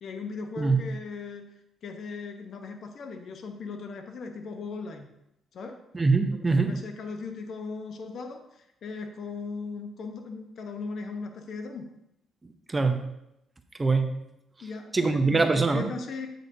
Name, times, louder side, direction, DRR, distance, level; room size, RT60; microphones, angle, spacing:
voice 1, 0.0-1.5 1.8-5.1 5.5-5.8 6.5-11.9 14.6-16.3, left 4 dB, 60° left, 5 dB, 0.9 m, -38 dB
voice 2, 5.9-6.8 12.7-13.1 13.8-14.1 14.9-15.9, right 3 dB, 20° right, 7 dB, 0.7 m, -23 dB
8.1 x 7.7 x 2.7 m, 0.84 s
cardioid pair, 90°, 0 cm